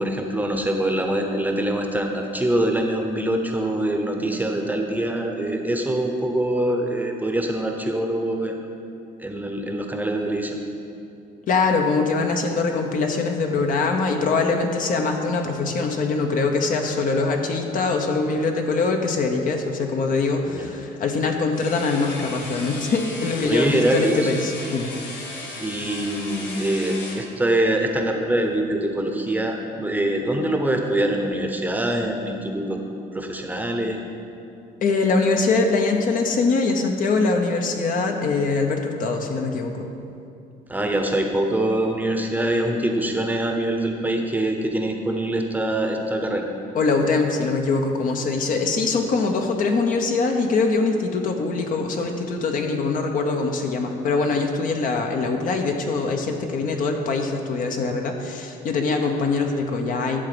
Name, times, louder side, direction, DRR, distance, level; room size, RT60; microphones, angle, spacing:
voice 1, 0.0-8.6 9.2-10.6 20.5-20.7 23.4-24.3 25.6-32.8 33.1-34.0 40.7-46.5, right 1 dB, 10° right, 3 dB, 0.9 m, -24 dB
voice 2, 11.5-24.9 34.8-39.9 46.7-60.2, left 3 dB, 55° left, 3 dB, 1.0 m, -23 dB
sound 1, 21.5-27.2, left 2 dB, 80° left, 1.8 m, -36 dB
11.5 x 3.9 x 7.8 m, 2.6 s
cardioid pair, 110°, 17 cm